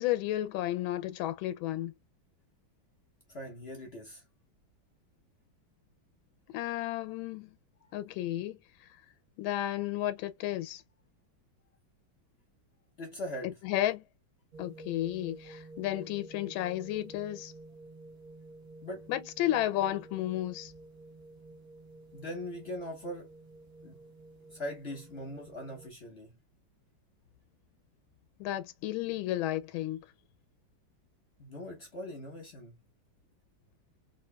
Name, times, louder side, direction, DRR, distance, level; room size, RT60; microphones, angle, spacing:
voice 1, 0.0-1.9 6.5-7.6 7.9-8.6 9.4-10.8 13.6-14.0 14.6-17.5 19.1-20.7 28.4-30.0, left 14 dB, 85° left, 1.4 m, -32 dB
voice 2, 3.3-4.2 7.8-7.9 13.0-13.6 18.8-19.1 22.1-23.3 23.8-24.0 24.5-26.3 31.4-32.8, left 1 dB, 45° left, 0.9 m, -41 dB
sound 1, 14.5-25.9, right 2 dB, 35° right, 1.5 m, -51 dB
3.8 x 2.8 x 2.2 m
omnidirectional pair, 2.2 m